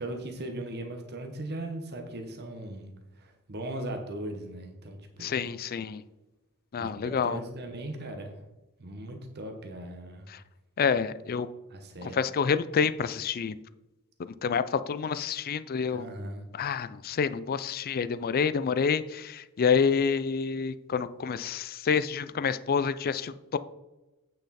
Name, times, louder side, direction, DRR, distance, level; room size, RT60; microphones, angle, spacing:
voice 1, 0.0-5.3 6.8-8.4 8.8-10.3 11.7-12.2 15.9-16.4, right 1 dB, 50° right, 4 dB, 1.0 m, -38 dB
voice 2, 5.2-6.0 6.7-7.4 10.3-10.4 10.8-11.5 12.0-13.6 14.2-16.1 16.5-23.6, left 6 dB, 45° left, 14 dB, 0.4 m, -28 dB
8.5 x 6.5 x 4.2 m, 1.0 s
head